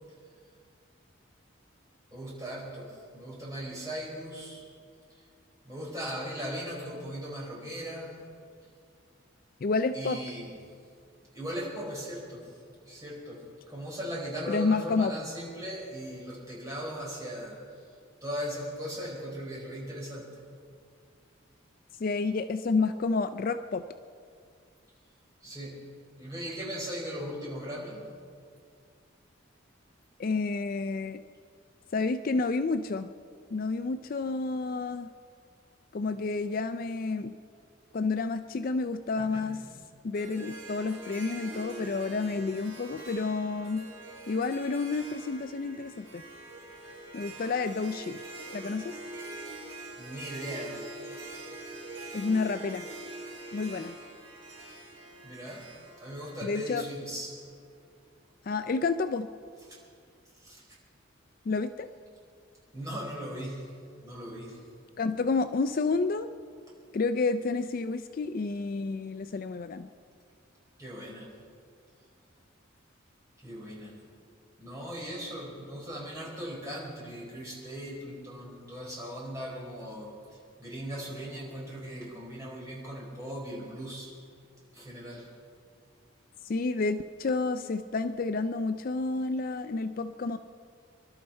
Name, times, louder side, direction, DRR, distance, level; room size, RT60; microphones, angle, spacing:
voice 1, 2.1-4.6 5.2-5.3 5.6-8.1 9.9-10.5 11.3-12.6 12.8-13.4 13.7-17.8 18.2-20.3 25.4-25.8 26.2-28.1 39.2-39.6 50.0-51.0 55.2-55.7 56.0-57.3 59.7-59.8 60.3-60.7 62.7-63.7 64.0-64.6 70.8-71.3 73.4-74.0 74.6-84.1 84.7-85.3, equal, 15° right, -5 dB, 4.4 m, -38 dB
voice 2, 9.6-10.2 14.5-15.1 22.0-23.8 30.2-31.2 31.9-33.1 33.5-35.1 35.9-37.4 37.9-39.6 40.0-43.9 44.3-46.2 47.1-48.2 48.5-49.0 52.1-52.9 53.5-53.9 56.4-56.8 58.5-59.3 61.5-61.9 65.0-66.3 66.9-69.9 86.4-90.4, left 3 dB, 45° left, 10 dB, 0.4 m, -30 dB
Harp, 40.1-57.4, right 2 dB, 80° right, 4.5 m, -44 dB
25.0 x 12.0 x 4.4 m, 2.3 s
head